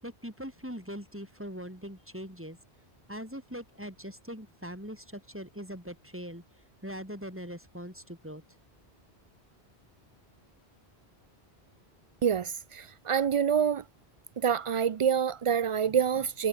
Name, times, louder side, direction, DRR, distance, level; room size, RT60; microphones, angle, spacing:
voice 1, 0.0-2.6 3.1-6.4 6.8-8.4, equal, 10° right, 7.5 m, -41 dB
voice 2, 12.2-13.8 14.4-16.5, right 7 dB, 50° right, 0.4 m, -27 dB
omnidirectional pair, 1.1 m